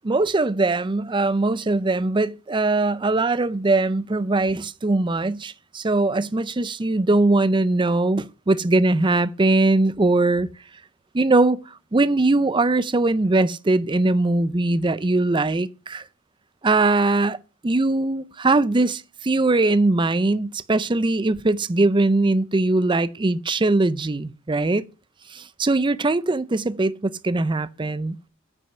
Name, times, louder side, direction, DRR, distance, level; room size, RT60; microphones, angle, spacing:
voice 1, 0.0-10.5 11.1-11.6 11.9-16.0 16.6-17.4 17.6-24.8 25.3-28.3, right 2 dB, 25° right, 0.5 m, -21 dB
9.2 x 6.2 x 6.6 m
head